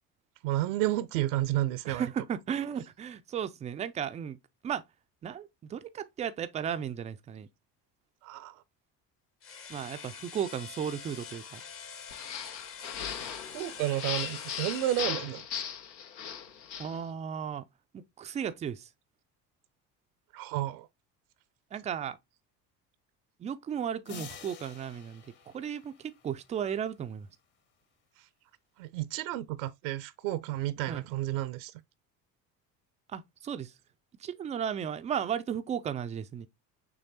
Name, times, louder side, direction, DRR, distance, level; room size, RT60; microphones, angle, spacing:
voice 1, 0.4-2.0 8.2-8.6 13.5-15.5 20.3-20.9 28.8-31.7, right 15 dB, 60° right, 0.6 m, -31 dB
voice 2, 1.9-4.4 4.6-4.8 5.2-7.5 9.7-11.6 16.8-17.7 17.9-18.9 21.7-22.2 23.4-27.3 30.9-31.1 33.1-33.7 34.2-36.5, right 8 dB, 15° right, 0.3 m, -35 dB
sound 1, 9.4-15.1, left 6 dB, 25° left, 0.7 m, -45 dB
sound 2, 12.1-17.0, left 8 dB, 85° left, 0.8 m, -38 dB
sound 3, 24.1-26.6, left 7 dB, 50° left, 1.3 m, -48 dB
6.2 x 3.1 x 2.7 m
figure-of-eight pair, 60°, 50 cm